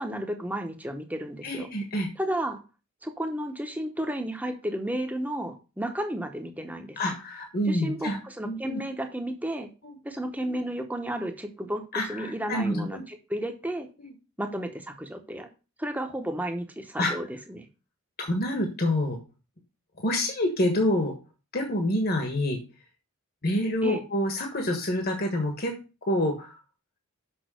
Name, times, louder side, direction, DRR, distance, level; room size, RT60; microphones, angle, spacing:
voice 1, 0.0-1.7 2.2-2.6 3.0-7.0 7.7-9.7 10.0-11.8 12.1-13.9 14.4-15.5 15.8-17.7 23.8-24.0, right 1 dB, 5° right, 5 dB, 0.9 m, -32 dB
voice 2, 1.4-2.1 7.0-8.2 8.4-8.8 9.8-10.0 11.9-13.0 14.0-14.1 17.0-17.1 18.2-19.2 20.0-21.1 21.5-22.6 23.4-25.7 26.0-26.6, left 1 dB, 45° left, 3 dB, 1.4 m, -27 dB
6.3 x 6.0 x 6.2 m, 0.32 s
head